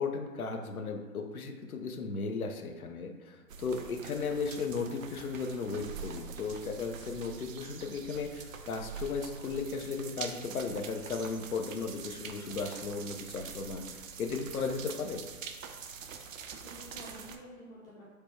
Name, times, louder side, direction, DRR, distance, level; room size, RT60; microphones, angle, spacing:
voice 1, 0.0-15.2, left 4 dB, 90° left, 4 dB, 0.6 m, -36 dB
sound 1, 3.5-17.4, right 6 dB, 70° right, 0.5 m, -45 dB
voice 2, 16.5-18.0, equal, 10° left, -7 dB, 0.5 m, -50 dB
3.3 x 2.1 x 4.3 m, 1.2 s
figure-of-eight pair, 120°, 42 cm